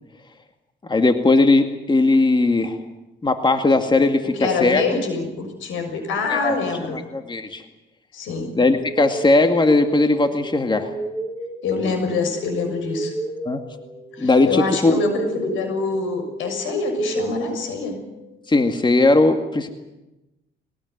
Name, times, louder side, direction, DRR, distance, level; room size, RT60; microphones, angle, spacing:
voice 1, 0.9-2.8 3.2-4.2 4.6-4.8 6.3-6.5 6.9-7.6 8.5-10.9 13.4-13.6 14.2-15.0 18.5-19.7, left 2 dB, 25° left, 6 dB, 2.2 m, -18 dB
voice 2, 4.2-7.0 8.1-8.5 11.6-13.1 14.1-18.0, left 4 dB, 85° left, 6 dB, 6.5 m, -25 dB
sound 1, 8.8-18.5, right 2 dB, 5° left, 6.9 m, -33 dB
21.5 x 19.0 x 9.6 m, 0.98 s
cardioid pair, 90°, 20 cm